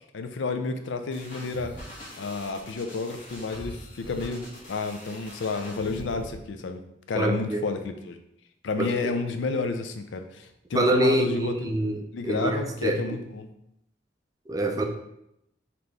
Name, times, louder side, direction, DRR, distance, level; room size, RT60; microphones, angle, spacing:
voice 1, 0.1-1.7 2.2-6.8 7.1-8.2 8.6-11.8 12.1-13.5, left 3 dB, 75° left, 7 dB, 0.4 m, -31 dB
sound 1, 1.1-6.4, equal, 45° left, 1.4 m, -43 dB
voice 2, 7.1-7.7 8.8-9.1 10.7-13.0 14.5-14.8, right 1 dB, 20° right, 3 dB, 0.3 m, -25 dB
4.1 x 3.0 x 3.3 m, 0.80 s
head